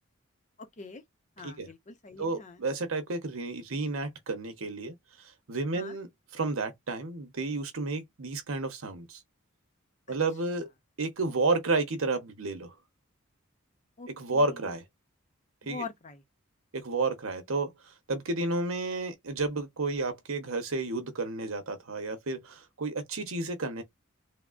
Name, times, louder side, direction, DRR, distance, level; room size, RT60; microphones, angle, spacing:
voice 1, 0.6-1.0 1.4-2.6 5.7-6.0 10.1-10.2 14.0-14.7 15.6-16.2, left 4 dB, 35° left, 0.6 m, -44 dB
voice 2, 2.2-4.9 5.5-9.2 10.1-10.7 11.0-12.7 14.1-14.8 15.7-15.8 16.7-17.7 18.1-23.8, right 3 dB, 85° right, 0.9 m, -31 dB
3.5 x 2.1 x 2.5 m
head